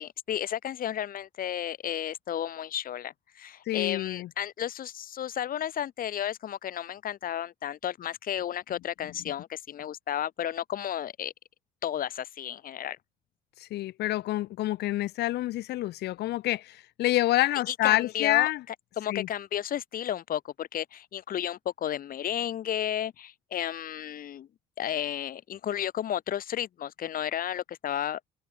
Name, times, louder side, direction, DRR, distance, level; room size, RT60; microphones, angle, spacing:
voice 1, 0.0-11.3 11.8-13.0 17.7-18.5 19.0-24.5 24.8-28.2, left 10 dB, 55° left, 7.8 m, -33 dB
voice 2, 3.7-4.3 13.6-18.6 19.1-19.3, left 16 dB, 75° left, 7.8 m, -27 dB
cardioid pair, 110°, 17 cm